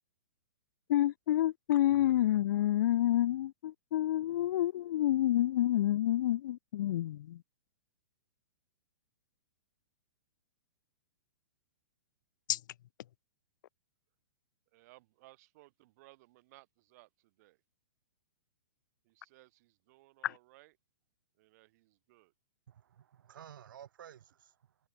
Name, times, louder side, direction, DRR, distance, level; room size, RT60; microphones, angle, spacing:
voice 1, 0.9-7.4 12.5-12.6, left 13 dB, 60° left, 0.4 m, -29 dB
voice 2, 14.7-17.6 19.0-20.8 21.3-22.3, right 20 dB, 45° right, 5.7 m, -61 dB
voice 3, 22.7-24.8, right 10 dB, 65° right, 4.6 m, -53 dB
hypercardioid pair, 120°, 12 cm